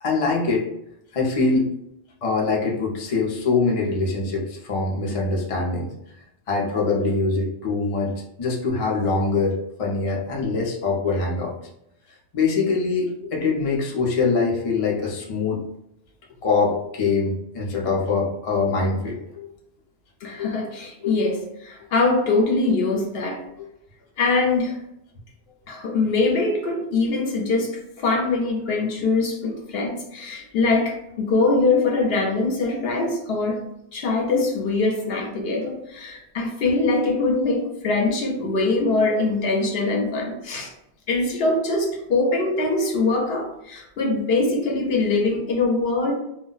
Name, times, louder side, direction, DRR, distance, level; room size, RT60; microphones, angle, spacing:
voice 1, 0.0-0.7 1.1-1.7 2.2-5.9 6.5-11.6 12.3-15.6 16.4-19.5 20.4-20.6 21.0-21.2, left 4 dB, 45° left, -2 dB, 0.5 m, -23 dB
voice 2, 20.2-23.4 24.2-24.7 25.7-33.6 33.9-40.7 41.1-46.1, left 3 dB, 65° left, 1 dB, 0.8 m, -23 dB
2.2 x 2.1 x 3.8 m, 0.80 s
omnidirectional pair, 1.1 m